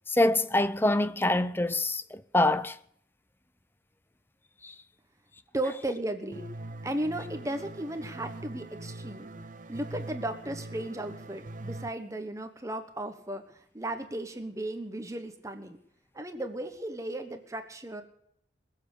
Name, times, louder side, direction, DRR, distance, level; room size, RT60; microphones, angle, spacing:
voice 1, 0.1-2.8 4.6-4.7, left 1 dB, 10° left, 0.6 m, -25 dB
voice 2, 5.5-6.5 6.8-9.3 9.7-15.8 16.1-18.0, right 1 dB, 15° right, 1.2 m, -35 dB
sound 1, 6.3-11.9, right 2 dB, 45° right, 0.8 m, -42 dB
21.5 x 7.6 x 8.3 m
head